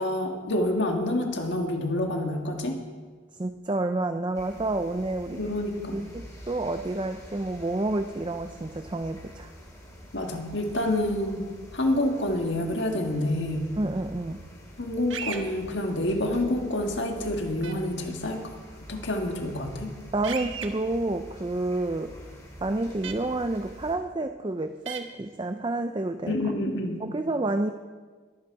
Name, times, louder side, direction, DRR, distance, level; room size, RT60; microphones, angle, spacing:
voice 1, 0.0-2.8 5.4-6.1 10.1-13.7 14.8-18.4 18.9-19.9 26.3-27.1, left 1 dB, 60° left, 3 dB, 1.7 m, -28 dB
voice 2, 3.4-5.4 5.9-9.5 13.8-14.4 20.1-22.2 22.6-26.4 27.0-27.7, right 2 dB, 25° right, 7 dB, 0.4 m, -29 dB
sound 1, 4.3-24.0, equal, 15° left, 2.4 m, -46 dB
sound 2, 15.1-15.4 17.6-17.7 20.2-20.7 23.0-23.1 24.9-25.0, right 7 dB, 70° right, 1.2 m, -34 dB
22.0 x 8.7 x 4.8 m, 1.5 s
head